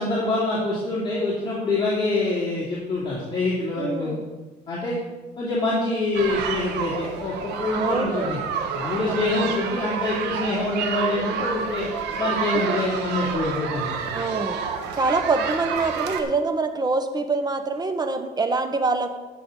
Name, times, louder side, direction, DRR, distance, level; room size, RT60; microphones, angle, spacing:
voice 1, 0.0-4.2 4.7-5.0 5.4-8.4 8.7-11.9 12.2-14.1, left 2 dB, 30° left, -7 dB, 2.8 m, -25 dB
voice 2, 3.8-4.2 7.7-8.4 14.1-14.6 14.9-19.1, right 3 dB, 25° right, 8 dB, 1.1 m, -25 dB
sound 1, 6.1-16.2, right 6 dB, 85° right, 1.2 m, -29 dB
16.0 x 6.9 x 3.9 m, 1.2 s
cardioid pair, 110°, 17 cm